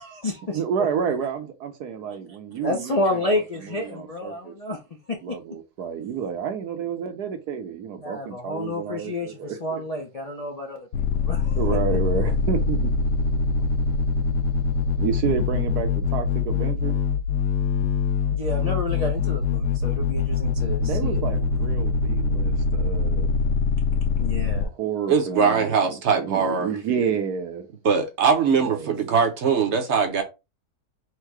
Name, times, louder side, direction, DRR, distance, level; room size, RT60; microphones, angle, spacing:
voice 1, 0.0-0.9 2.6-4.8 5.1-5.4 8.0-11.6 18.3-21.4 24.2-24.7, left 2 dB, 45° left, 0.5 m, -30 dB
voice 2, 0.5-4.5 5.2-9.8 11.6-12.9 15.0-17.0 20.8-23.3 24.7-27.7 28.5-29.1, right 7 dB, 75° right, 1.3 m, -30 dB
sound 1, 10.9-24.6, left 4 dB, 90° left, 1.3 m, -23 dB
voice 3, 25.1-26.7 27.8-30.2, right 6 dB, 55° right, 1.0 m, -21 dB
4.6 x 2.2 x 4.6 m
omnidirectional pair, 1.7 m